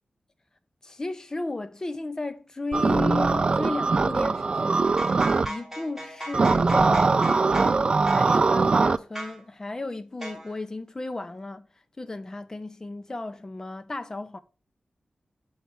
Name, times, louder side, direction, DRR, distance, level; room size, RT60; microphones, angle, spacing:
voice 1, 0.8-4.9 5.4-11.7 12.0-14.4, left 2 dB, 25° left, 0.5 m, -34 dB
sound 1, 2.7-5.5 6.3-9.0, right 4 dB, 45° right, 0.3 m, -22 dB
sound 2, 4.8-7.8 8.0-8.3 9.1-9.4 10.2-10.5, right 1 dB, 10° right, 2.2 m, -37 dB
7.1 x 4.2 x 3.4 m
wide cardioid pair, 115°, 2 cm